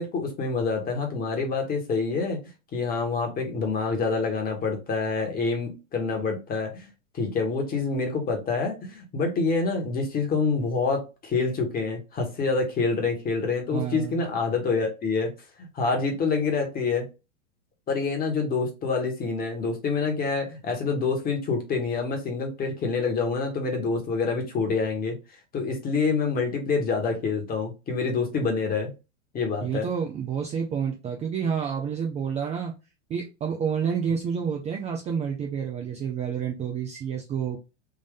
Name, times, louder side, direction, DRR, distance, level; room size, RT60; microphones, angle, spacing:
voice 1, 0.0-2.4 2.7-6.9 7.1-15.3 15.7-17.1 17.9-25.1 25.5-28.9 29.3-29.9, left 4 dB, 25° left, 3 dB, 1.3 m, -27 dB
voice 2, 13.7-14.2 29.6-32.7 33.1-37.6, right 7 dB, 20° right, 1 dB, 0.5 m, -29 dB
3.6 x 2.5 x 3.6 m, 0.28 s
hypercardioid pair, 115°, 37 cm